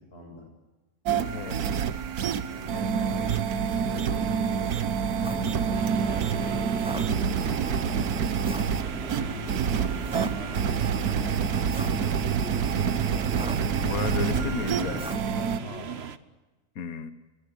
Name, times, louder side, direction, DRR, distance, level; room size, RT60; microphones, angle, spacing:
voice 1, 0.1-0.4 2.5-4.7 6.0-8.0 8.6-12.3 12.6-13.2 13.8-16.0, left 2 dB, 45° left, 1 dB, 8.3 m, -43 dB
sound 1, 1.1-15.6, right 7 dB, 85° right, 1.6 m, -27 dB
voice 2, 1.3-1.9 13.8-15.0 16.8-17.1, left 6 dB, 70° left, 11 dB, 1.7 m, -33 dB
sound 2, 5.2-15.2, right 1 dB, 5° right, 0.4 m, -38 dB
sound 3, 5.7-16.2, right 6 dB, 50° right, 1.2 m, -40 dB
23.0 x 20.0 x 9.8 m, 1.1 s
omnidirectional pair, 1.5 m